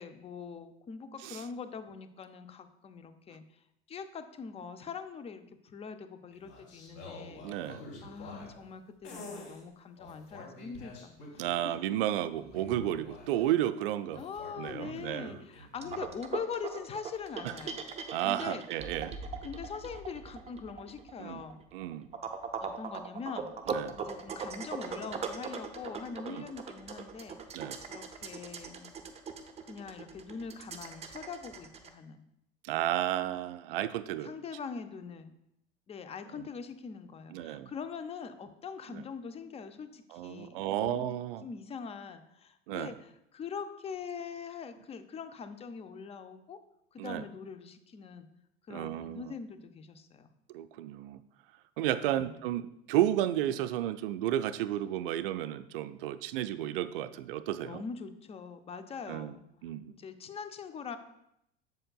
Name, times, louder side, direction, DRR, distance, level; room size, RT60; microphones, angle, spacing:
voice 1, 0.0-7.5 8.0-11.8 14.1-18.7 19.4-21.6 22.6-23.5 23.9-27.4 27.9-28.9 29.6-32.2 34.2-35.4 35.9-41.1 41.4-46.6 46.9-48.3 48.7-50.3 52.1-52.3 57.6-59.4 59.9-61.0, left 6 dB, 20° left, 10 dB, 0.5 m, -43 dB
sound 1, 6.3-8.7 9.0-9.6 10.0-11.7 12.3-13.5 14.1-16.0, left 1 dB, 45° left, 2.8 m, -47 dB
voice 2, 7.4-7.8 11.4-14.2 14.6-15.4 18.1-19.2 21.2-21.4 21.7-22.1 23.7-24.0 26.3-26.5 27.5-27.8 32.6-34.3 37.3-37.7 38.9-39.0 40.1-41.4 42.7-42.9 47.0-47.2 48.7-49.3 50.5-51.2 51.8-57.8 59.1-59.3 59.6-59.9, right 12 dB, 55° right, 12 dB, 0.4 m, -32 dB
sound 2, 15.8-31.9, right 6 dB, 20° right, 0.7 m, -40 dB
7.7 x 7.5 x 2.3 m, 0.80 s
figure-of-eight pair, 80°, 33 cm